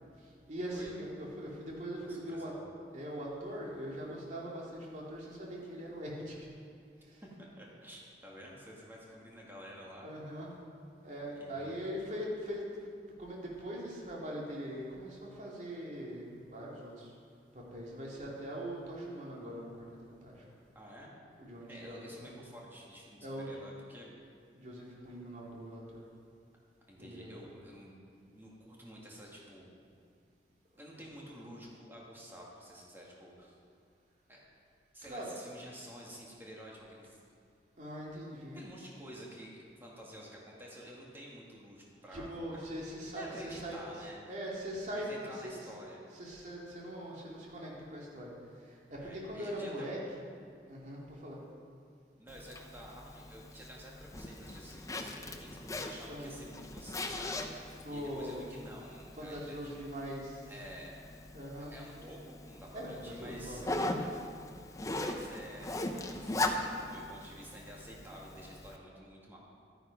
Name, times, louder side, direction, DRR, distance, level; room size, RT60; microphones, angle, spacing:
voice 1, 0.5-2.5 2.9-6.4 7.1-7.2 10.0-10.5 11.0-12.8 13.2-17.1 17.5-20.4 21.4-22.3 23.2-23.5 24.5-26.1 27.0-27.5 30.9-31.1 35.0-35.3 37.8-38.6 42.1-43.9 44.3-45.7 46.1-48.3 48.6-50.0 50.7-51.4 56.1-56.4 57.7-58.5 59.1-60.5 61.3-61.7 62.7-64.0, equal, 45° right, -4 dB, 2.5 m, -42 dB
voice 2, 2.0-2.7 7.2-10.2 11.4-11.9 20.7-21.2 21.7-24.2 26.9-28.0 28.3-29.8 30.7-33.6 34.3-34.4 34.9-37.2 38.5-39.5 39.8-42.3 43.1-44.2 44.9-46.0 48.9-50.0 52.2-59.8 60.5-60.9 61.6-63.7 64.8-69.4, equal, 15° right, -4 dB, 2.0 m, -50 dB
Zipper (clothing), 52.3-68.8, left 2 dB, 20° left, 0.6 m, -40 dB
12.0 x 9.6 x 5.3 m, 2.3 s
head